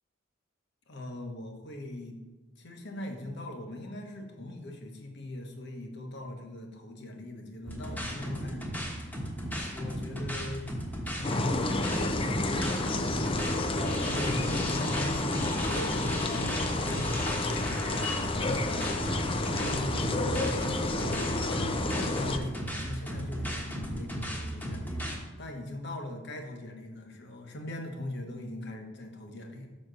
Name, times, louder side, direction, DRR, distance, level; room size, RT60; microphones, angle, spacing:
voice 1, 0.9-2.2 2.5-8.8 9.7-10.8 11.2-19.2 19.5-21.2 21.9-29.7, left 1 dB, 55° left, 2 dB, 1.2 m, -40 dB
sound 1, 7.7-25.2, equal, 10° left, 1.1 m, -36 dB
sound 2, 11.2-22.4, left 2 dB, 25° left, 0.5 m, -30 dB
6.1 x 4.3 x 6.4 m, 1.2 s
head